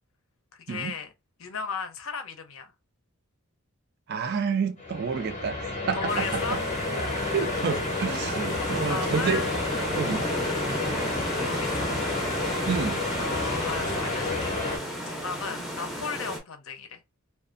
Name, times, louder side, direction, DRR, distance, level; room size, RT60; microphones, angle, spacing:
voice 1, 0.5-1.1 1.4-2.7 5.9-6.6 8.6-9.5 11.4-11.9 13.2-17.0, left 5 dB, 70° left, 0.6 m, -36 dB
voice 2, 4.1-6.6 7.3-9.5 9.9-10.2 12.7-13.0, right 6 dB, 45° right, 0.3 m, -29 dB
sound 1, 4.8-14.8, left 2 dB, 30° left, 0.8 m, -30 dB
sound 2, 6.1-16.4, equal, ahead, 0.6 m, -33 dB
2.5 x 2.3 x 2.4 m
head